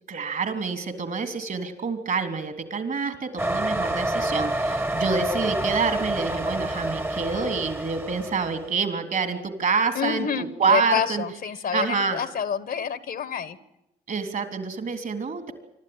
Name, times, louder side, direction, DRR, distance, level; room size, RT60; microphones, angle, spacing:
voice 1, 0.1-11.2 11.7-12.2 14.1-15.5, right 5 dB, 55° right, 7 dB, 3.4 m, -27 dB
sound 1, 3.4-8.7, right 1 dB, 15° right, 1.2 m, -28 dB
voice 2, 9.9-13.6, left 7 dB, 65° left, 15 dB, 1.3 m, -28 dB
25.0 x 12.5 x 9.7 m, 0.87 s
supercardioid pair, 50°, 17 cm